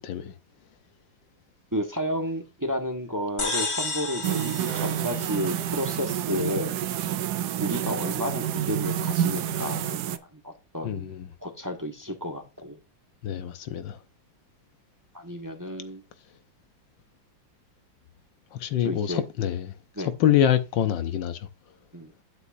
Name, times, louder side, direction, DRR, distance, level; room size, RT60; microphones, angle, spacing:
voice 1, 0.0-0.3 10.8-11.3 13.2-14.0 18.5-21.5, left 10 dB, 75° left, 1.5 m, -26 dB
voice 2, 1.7-6.8 7.6-11.1 11.4-12.8 15.1-16.0 18.8-19.2 19.9-20.1 21.9-22.1, equal, 10° right, 1.3 m, -32 dB
sound 1, 3.4-6.0, left 3 dB, 50° left, 2.7 m, -32 dB
sound 2, 4.2-10.2, right 10 dB, 70° right, 1.0 m, -28 dB
9.3 x 8.3 x 2.6 m
omnidirectional pair, 2.1 m